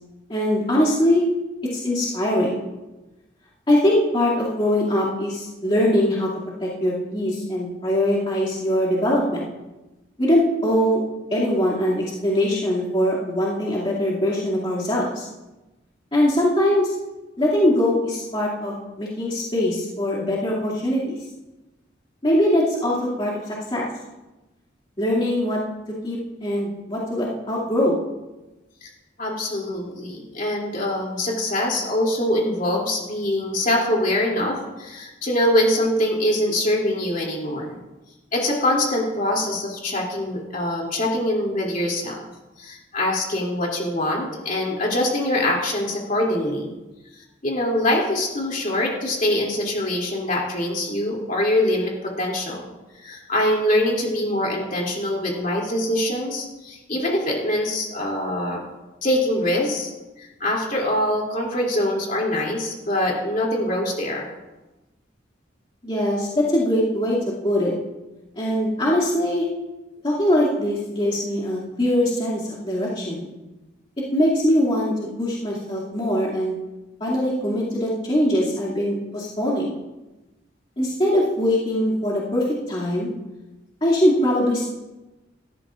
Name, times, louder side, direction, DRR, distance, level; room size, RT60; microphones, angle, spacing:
voice 1, 0.3-1.3 1.7-2.6 3.7-6.3 6.6-9.4 10.2-11.0 11.3-15.3 16.1-16.9 17.4-21.2 22.2-23.9 25.0-25.6 26.0-28.0 65.8-67.2 67.4-67.7 68.4-69.5 70.0-73.3 74.1-76.6 77.0-79.7 80.8-83.1 83.8-84.7, left 1 dB, 30° left, -8 dB, 2.5 m, -22 dB
voice 2, 29.2-37.8 38.3-42.3 42.6-46.7 47.4-52.6 52.9-58.6 59.0-59.9 60.2-64.3, left 1 dB, 45° left, -2 dB, 2.9 m, -24 dB
17.5 x 13.5 x 2.5 m, 1.1 s
head